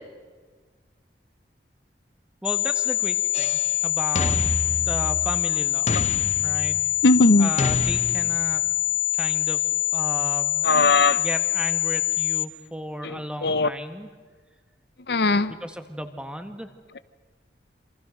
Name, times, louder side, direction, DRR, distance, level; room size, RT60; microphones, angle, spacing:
sound 1, 2.4-12.4, left 15 dB, 85° left, 1.2 m, -24 dB
voice 1, 2.4-4.4 4.8-6.0 6.4-6.9 7.4-8.6 9.1-9.7 9.9-10.7 11.2-14.1 15.5-16.7, equal, 5° right, 1.7 m, -34 dB
sound 2, 3.3-3.8 4.2-5.4 5.9-7.0 7.6-8.6, left 2 dB, 40° left, 1.0 m, -28 dB
voice 2, 7.0-7.5 10.6-11.2 13.0-13.2 13.4-13.7 15.1-15.5, left 3 dB, 60° left, 0.7 m, -18 dB
27.5 x 26.5 x 6.6 m
head